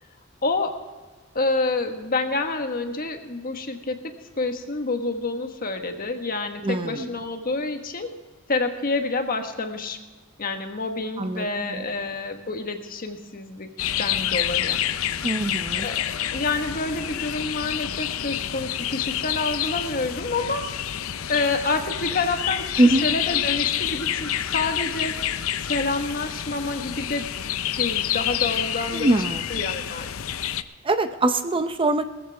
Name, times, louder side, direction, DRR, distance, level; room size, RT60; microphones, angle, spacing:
voice 1, 0.4-0.7 1.3-8.1 8.5-10.0 10.4-14.8 15.7-16.0 16.3-20.7 21.3-27.3 27.8-29.1 29.5-30.1, left 3 dB, 45° left, 5 dB, 1.4 m, -28 dB
voice 2, 6.6-7.1 11.2-11.8 15.2-15.9 22.8-23.1 28.9-29.4 30.8-32.0, right 2 dB, 25° right, 9 dB, 0.6 m, -22 dB
sound 1, 13.8-30.6, left 10 dB, 80° left, 0.6 m, -28 dB
19.0 x 14.5 x 3.5 m, 1.3 s
head